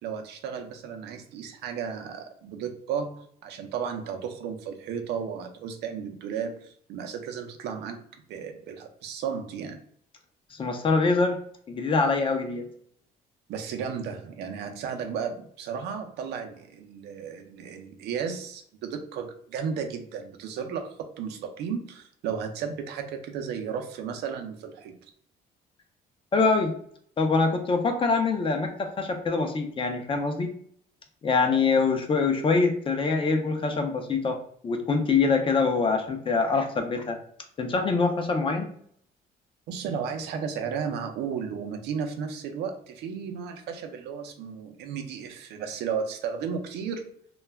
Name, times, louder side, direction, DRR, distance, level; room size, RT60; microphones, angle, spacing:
voice 1, 0.0-8.0 8.3-9.8 13.5-25.1 39.7-47.1, right 7 dB, 80° right, 5 dB, 0.5 m, -34 dB
voice 2, 10.5-11.4 11.7-12.7 26.3-26.7 27.2-30.5 31.2-37.2 37.6-38.7, left 4 dB, 30° left, 5 dB, 0.5 m, -24 dB
2.2 x 2.1 x 3.3 m, 0.63 s
cardioid pair, 110°, 17 cm